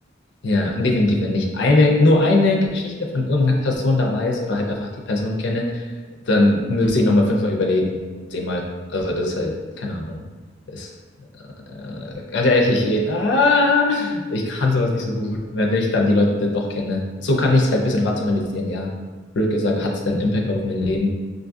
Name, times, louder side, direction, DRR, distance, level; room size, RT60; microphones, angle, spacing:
voice 1, 0.4-4.8 5.1-5.8 6.2-8.0 8.3-8.6 8.9-10.2 10.7-10.9 11.7-18.9 19.3-21.1, left 2 dB, 65° left, 0 dB, 0.5 m, -20 dB
5.0 x 2.5 x 2.3 m, 1.4 s
head